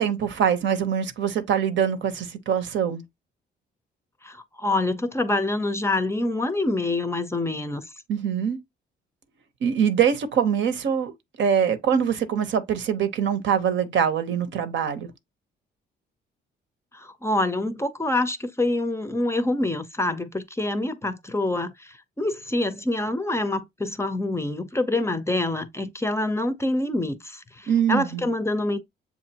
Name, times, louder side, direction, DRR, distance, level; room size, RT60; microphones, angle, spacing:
voice 1, 0.0-3.0 8.1-8.6 9.6-11.1 11.4-15.1 27.7-28.2, right 8 dB, 70° right, 0.8 m, -23 dB
voice 2, 4.2-7.8 16.9-28.8, left 2 dB, 15° left, 0.6 m, -26 dB
7.0 x 2.6 x 2.8 m
cardioid pair, 90°, 20 cm